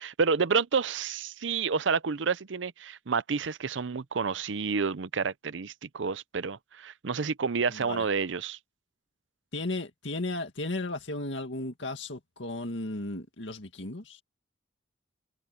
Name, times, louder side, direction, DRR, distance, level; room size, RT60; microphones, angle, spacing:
voice 1, 0.0-8.6, right 5 dB, 75° right, 0.6 m, -29 dB
voice 2, 7.7-8.1 9.5-14.2, left 2 dB, 70° left, 2.1 m, -35 dB
head